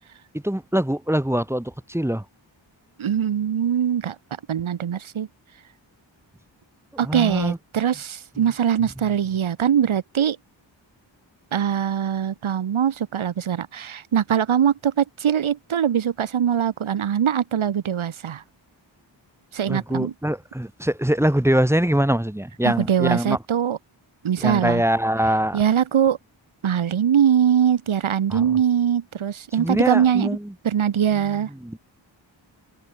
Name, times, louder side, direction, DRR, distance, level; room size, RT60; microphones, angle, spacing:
voice 1, 0.3-2.2 7.0-7.6 8.4-8.5 8.8-8.9 19.7-23.4 24.4-25.6 28.3-28.6 29.6-30.5 31.1-31.8, right 1 dB, 5° right, 0.9 m, -23 dB
voice 2, 3.0-4.2 4.5-5.3 7.0-10.4 11.5-18.4 19.5-20.1 22.6-23.8 24.2-24.8 25.5-26.2 26.6-30.4 30.6-31.5, right 9 dB, 90° right, 1.3 m, -22 dB
wide cardioid pair, 80°, 47 cm